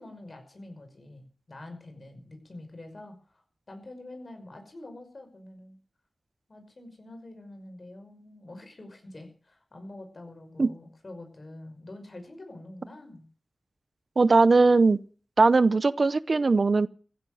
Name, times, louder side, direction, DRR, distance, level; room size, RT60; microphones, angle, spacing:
voice 1, 0.0-3.4 3.7-5.8 6.5-13.2, left 2 dB, 50° left, 5.7 m, -46 dB
voice 2, 14.2-15.0 15.4-16.9, right 3 dB, 55° right, 0.7 m, -20 dB
15.5 x 10.5 x 7.7 m
wide cardioid pair, 80°, 0 cm